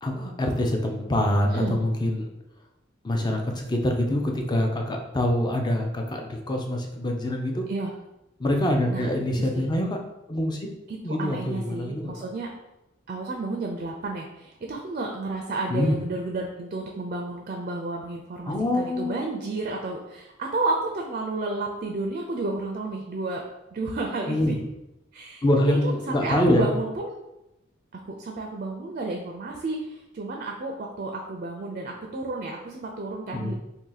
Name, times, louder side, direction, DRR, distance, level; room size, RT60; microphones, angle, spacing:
voice 1, 0.0-2.3 3.0-7.7 8.4-10.0 10.3-10.6 11.0-12.1 15.7-16.0 18.5-19.2 24.3-24.6 25.4-26.7 33.3-33.5, left 1 dB, 20° left, 2 dB, 0.4 m, -25 dB
voice 2, 9.4-9.7 10.9-12.5 13.1-23.4 23.7-24.5 25.1-27.1 27.9-33.5, right 2 dB, 40° right, 1 dB, 0.4 m, -31 dB
2.7 x 2.6 x 3.9 m, 0.91 s
head